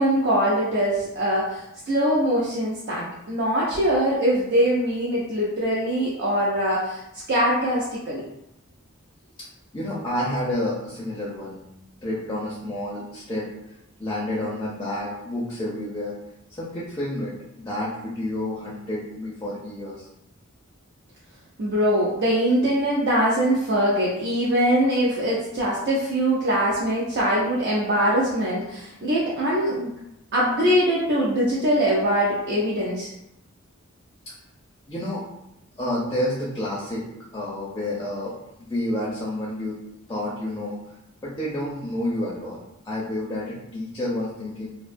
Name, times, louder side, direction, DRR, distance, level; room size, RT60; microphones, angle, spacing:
voice 1, 0.0-7.0 7.3-8.2 21.6-29.9 30.3-33.1, equal, 55° right, -5 dB, 0.4 m, -22 dB
voice 2, 9.7-11.6 12.0-13.5 14.0-16.2 16.5-20.1 34.9-35.3 35.8-37.1 37.3-39.8 40.1-40.8 41.2-44.7, left 1 dB, 15° left, -5 dB, 0.4 m, -29 dB
2.4 x 2.2 x 2.5 m, 0.86 s
head